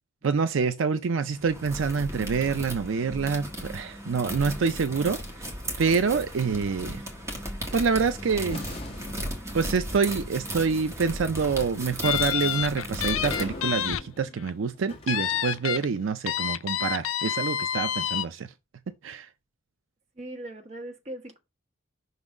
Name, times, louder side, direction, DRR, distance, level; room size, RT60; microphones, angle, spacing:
voice 1, 0.2-5.5 5.8-7.0 7.7-8.6 9.5-18.5 19.0-19.3, right 5 dB, 75° right, 0.5 m, -26 dB
sound 1, 1.3-13.9, equal, 15° right, 1.4 m, -36 dB
sound 2, 4.3-6.7 7.9-8.0 8.5-16.0, left 2 dB, 30° left, 1.6 m, -44 dB
sound 3, 12.0-14.0 14.4-14.5 15.1-15.8 16.3-18.3, left 10 dB, 90° left, 0.5 m, -28 dB
voice 2, 20.2-21.4, right 1 dB, 35° right, 1.4 m, -40 dB
5.9 x 4.0 x 4.8 m
head